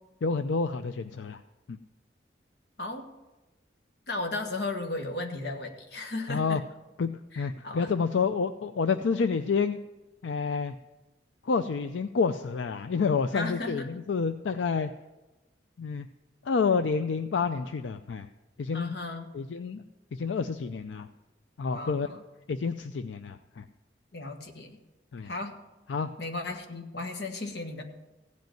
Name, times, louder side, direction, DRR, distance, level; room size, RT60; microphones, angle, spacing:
voice 1, 0.2-1.4 1.7-1.8 6.3-6.6 7.0-7.1 7.4-9.8 10.2-10.7 11.4-14.9 15.8-16.1 16.4-18.3 18.6-18.9 19.3-19.8 20.1-21.1 21.6-22.1 22.5-23.7 25.1-25.3 25.9-26.1, left 5 dB, 90° left, 9 dB, 0.5 m, -28 dB
voice 2, 4.1-6.6 7.3-7.9 13.3-14.0 18.7-19.3 21.7-22.2 24.1-24.8 25.2-25.6 26.2-27.8, left 2 dB, 65° left, 4 dB, 1.4 m, -35 dB
16.0 x 5.3 x 9.1 m, 1.1 s
head